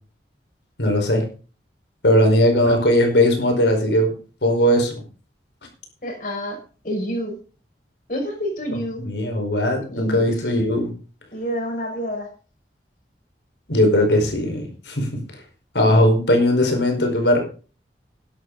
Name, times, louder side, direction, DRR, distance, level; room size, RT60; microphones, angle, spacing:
voice 1, 0.8-1.2 2.0-4.1 4.4-4.9 9.0-10.9 13.7-15.1 15.7-17.4, left 1 dB, 85° left, 4 dB, 5.1 m, -18 dB
voice 2, 6.0-6.6 6.8-7.4 8.1-9.0 9.9-10.5 11.3-12.3, equal, 50° left, 1 dB, 6.1 m, -28 dB
13.0 x 11.5 x 4.1 m, 0.37 s
head